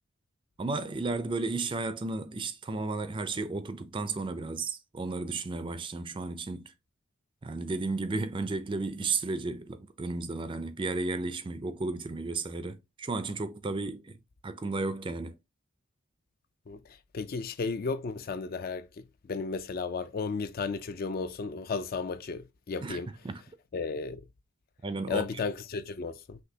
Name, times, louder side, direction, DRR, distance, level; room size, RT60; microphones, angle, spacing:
voice 1, 0.6-6.7 7.4-14.2 14.4-15.4 22.8-23.0 23.2-23.4 24.8-25.3, right 3 dB, 25° right, 0.4 m, -33 dB
voice 2, 17.1-23.1 23.7-24.2 25.1-26.4, left 4 dB, 45° left, 0.4 m, -34 dB
5.9 x 3.0 x 2.7 m
head